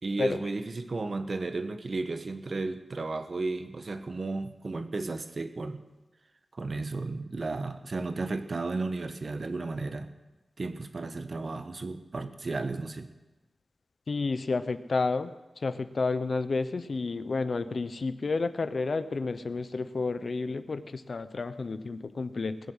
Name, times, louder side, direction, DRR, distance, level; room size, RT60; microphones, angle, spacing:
voice 1, 0.0-5.8 6.5-10.1 10.6-13.1, right 3 dB, 50° right, 8 dB, 1.2 m, -34 dB
voice 2, 14.1-22.6, left 3 dB, 60° left, 11 dB, 0.9 m, -31 dB
20.0 x 7.1 x 8.1 m, 1.1 s
wide cardioid pair, 95°, 0 cm